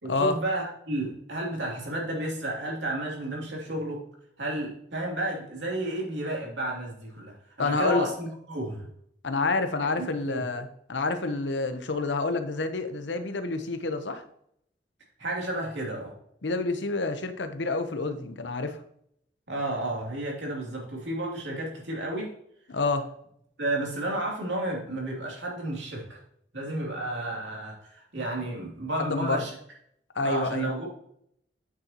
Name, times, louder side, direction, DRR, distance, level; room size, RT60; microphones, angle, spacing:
voice 1, 0.0-4.0 4.4-8.8 10.0-10.4 15.2-16.1 19.5-22.3 23.6-26.2 26.5-29.5 30.2-30.9, right 1 dB, 75° right, -2 dB, 2.8 m, -32 dB
voice 2, 7.6-8.1 9.2-14.2 16.4-18.8 22.7-23.1 29.0-29.4 30.1-30.7, left 3 dB, 75° left, 9 dB, 0.9 m, -28 dB
8.8 x 6.7 x 2.9 m, 0.71 s
head